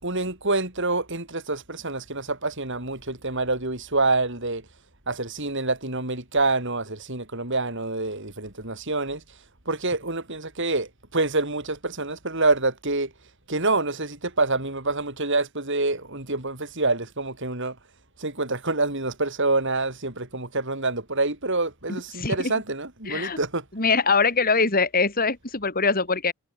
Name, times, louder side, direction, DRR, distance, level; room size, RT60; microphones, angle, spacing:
voice 1, 0.0-4.7 5.1-9.2 9.7-13.1 13.5-17.8 18.2-23.6, right 3 dB, 55° right, 5.4 m, -26 dB
voice 2, 22.1-22.5 23.1-23.4 23.7-26.3, left 4 dB, 40° left, 3.4 m, -23 dB
head